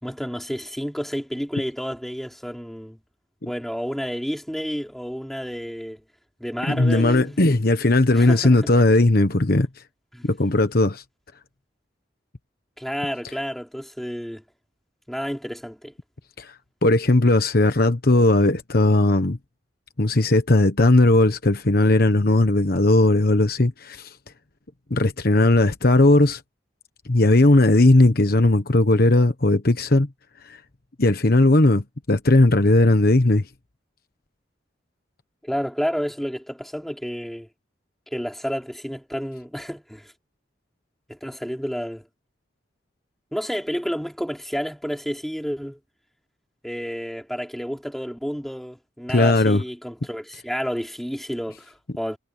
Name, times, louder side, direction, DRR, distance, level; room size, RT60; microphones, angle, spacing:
voice 1, 0.0-3.0 3.4-6.0 6.4-7.4 8.1-8.6 10.1-10.3 12.8-14.4 15.1-15.9 35.4-37.5 38.1-40.1 41.1-42.1 43.3-45.8 46.6-52.2, equal, ahead, 4.5 m, -30 dB
voice 2, 6.7-9.7 10.2-11.0 16.4-16.5 16.8-19.4 20.0-24.1 24.9-26.4 27.1-30.1 30.5-30.6 31.0-33.4 49.1-49.6, left 2 dB, 55° left, 1.2 m, -17 dB
head